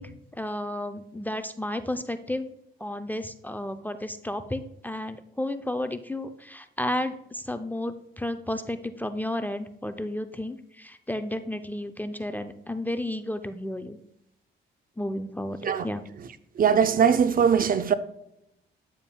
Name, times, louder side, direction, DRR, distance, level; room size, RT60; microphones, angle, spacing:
voice 1, 0.0-2.5 2.8-14.0 15.0-16.0, left 1 dB, 10° left, 0.5 m, -32 dB
voice 2, 16.6-17.9, right 7 dB, 45° right, 0.6 m, -21 dB
10.5 x 7.2 x 2.3 m
cardioid pair, 90°, 20 cm